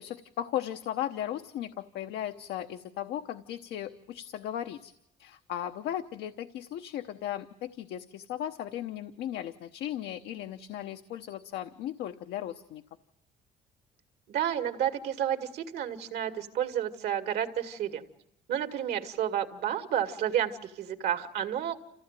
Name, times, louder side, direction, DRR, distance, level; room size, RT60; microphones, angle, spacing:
voice 1, 0.0-4.9 5.2-12.8, left 11 dB, 80° left, 7 dB, 1.0 m, -36 dB
voice 2, 14.3-18.0 18.5-21.8, right 10 dB, 70° right, 7 dB, 2.2 m, -31 dB
27.5 x 15.5 x 9.1 m, 0.87 s
cardioid pair, 110°, 17 cm